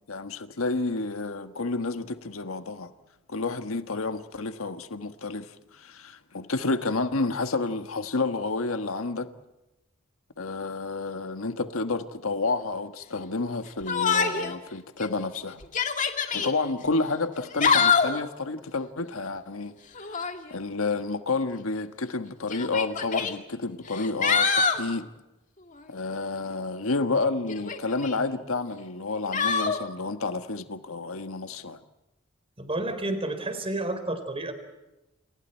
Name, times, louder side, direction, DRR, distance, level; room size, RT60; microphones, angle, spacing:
voice 1, 0.1-2.9 3.3-9.3 10.4-15.6 16.3-19.7 20.0-25.1 25.9-31.8, left 3 dB, 85° left, 1.4 m, -30 dB
Yell, 13.9-14.6 15.0-15.1 15.6-16.5 17.4-18.2 19.9-20.4 21.5-21.6 22.5-23.3 23.9-24.8 27.5-28.2 29.3-29.8, left 5 dB, 40° left, 2.3 m, -25 dB
voice 2, 32.6-34.5, right 2 dB, 25° right, 4.2 m, -30 dB
29.0 x 28.5 x 4.5 m
head